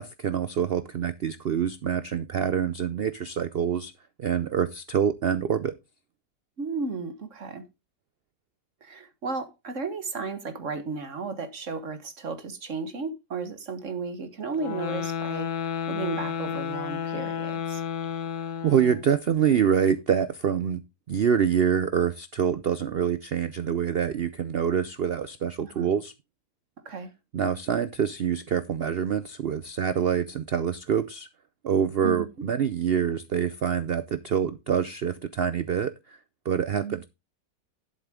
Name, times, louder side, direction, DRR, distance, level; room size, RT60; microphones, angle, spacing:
voice 1, 0.0-3.9 4.2-5.7 18.6-20.8 21.1-26.1 27.3-31.3 31.6-36.2 36.5-37.0, right 8 dB, 75° right, 0.5 m, -26 dB
voice 2, 6.6-7.7 8.8-17.8 25.6-25.9 26.8-27.1 32.0-32.2 36.7-37.0, right 4 dB, 50° right, 1.6 m, -34 dB
sound 1, 14.5-19.1, left 8 dB, 85° left, 1.6 m, -31 dB
11.5 x 7.5 x 3.6 m
omnidirectional pair, 1.8 m